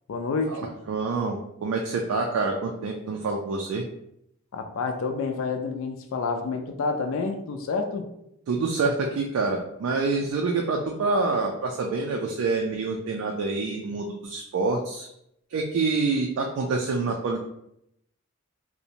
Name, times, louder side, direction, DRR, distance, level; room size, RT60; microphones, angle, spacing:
voice 1, 0.1-0.7 4.5-8.1, left 4 dB, 70° left, 5 dB, 0.4 m, -29 dB
voice 2, 0.9-3.8 8.5-15.1 15.5-17.4, right 3 dB, 85° right, 1 dB, 0.3 m, -27 dB
2.5 x 2.1 x 2.8 m, 0.77 s
head